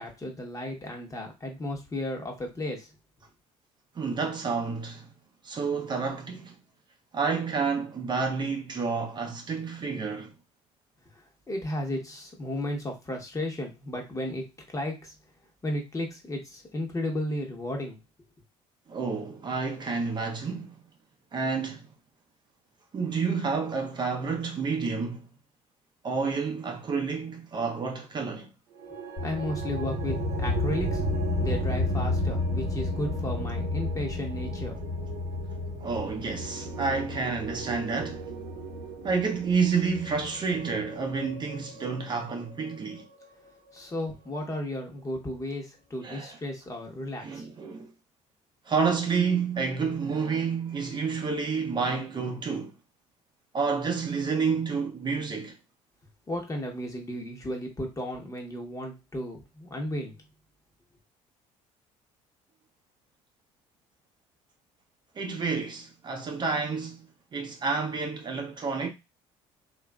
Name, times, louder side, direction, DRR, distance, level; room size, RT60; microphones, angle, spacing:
voice 1, 0.0-2.9 11.1-15.1 15.6-18.0 29.2-31.0 31.4-34.8 43.7-47.4 56.3-60.2, left 1 dB, 25° left, 1.0 m, -34 dB
voice 2, 4.0-5.1 5.4-6.6 7.1-10.3 18.9-20.7 21.3-21.9 22.9-25.3 26.0-28.5 35.8-38.3 39.0-43.1 46.0-46.4 47.2-47.9 48.7-52.7 53.5-55.6 65.2-68.9, right 5 dB, 35° right, 0.6 m, -29 dB
sound 1, 28.7-45.0, right 7 dB, 85° right, 0.6 m, -42 dB
sound 2, 29.2-40.3, left 2 dB, 55° left, 1.2 m, -31 dB
2.8 x 2.5 x 2.2 m
supercardioid pair, 90°, 14 cm